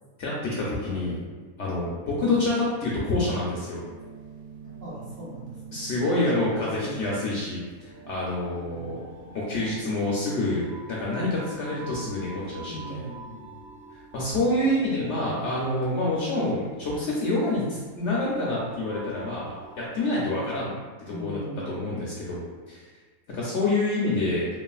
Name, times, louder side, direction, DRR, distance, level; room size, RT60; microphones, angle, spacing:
voice 1, 0.2-1.2 1.6-3.8 5.7-9.0 9.3-13.0 13.9-20.7 21.1-21.4 21.7-22.9 23.3-24.5, left 2 dB, 65° left, -5 dB, 0.8 m, -27 dB
sound 1, 3.8-19.9, right 2 dB, 80° right, 1.1 m, -45 dB
voice 2, 4.6-6.1 6.5-7.2 8.6-8.9 12.7-13.6 14.6-14.7 21.0-22.1, right 1 dB, 45° right, -9 dB, 1.1 m, -39 dB
3.1 x 2.3 x 2.3 m, 1.4 s
omnidirectional pair, 1.5 m